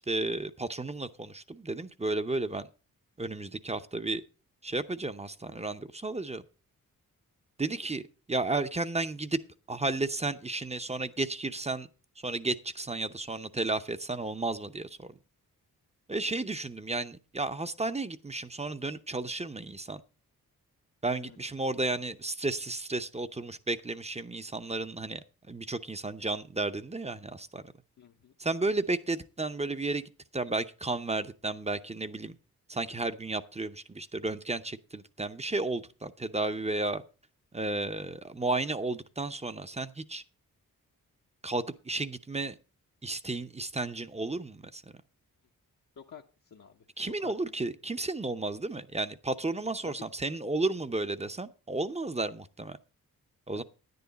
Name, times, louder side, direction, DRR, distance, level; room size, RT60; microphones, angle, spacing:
voice 1, 0.1-2.7 3.2-4.2 4.6-6.4 7.6-9.4 9.7-11.9 12.2-15.2 16.1-20.0 21.0-25.2 25.5-27.6 28.4-30.0 30.3-32.4 32.7-37.0 37.5-40.2 41.4-42.6 43.0-44.8 47.0-52.8 53.5-53.6, right 2 dB, 20° right, 11 dB, 0.7 m, -33 dB
voice 2, 28.0-28.4 46.0-46.8 47.2-47.3 49.8-50.1 53.5-53.6, left 7 dB, 55° left, 1 dB, 0.9 m, -49 dB
9.8 x 9.6 x 4.1 m, 0.33 s
cardioid pair, 60°, 36 cm